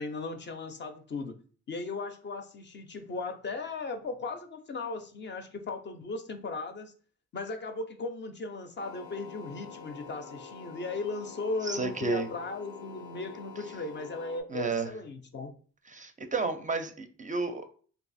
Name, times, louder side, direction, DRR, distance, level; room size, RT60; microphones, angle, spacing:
voice 1, 0.0-1.4 1.7-6.9 7.3-15.5, left 3 dB, 35° left, 0.5 m, -37 dB
sound 1, 8.8-14.4, left 5 dB, 90° left, 0.6 m, -46 dB
voice 2, 11.6-12.3 14.5-14.9 15.9-17.7, right 4 dB, 25° right, 0.4 m, -31 dB
2.6 x 2.4 x 4.0 m
cardioid pair, 90°, 30 cm